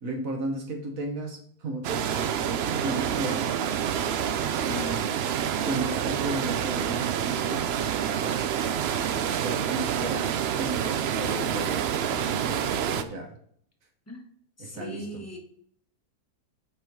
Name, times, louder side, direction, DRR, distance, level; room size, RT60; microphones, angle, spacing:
voice 1, 0.0-3.6 4.7-8.4 9.4-10.3 10.6-13.4 14.6-15.0, right 1 dB, 60° right, 3 dB, 1.6 m, -35 dB
sound 1, 1.8-13.0, right 9 dB, 80° right, 0.5 m, -28 dB
voice 2, 14.6-15.4, equal, 10° left, 2 dB, 1.0 m, -39 dB
6.7 x 5.2 x 4.7 m, 0.64 s
omnidirectional pair, 1.7 m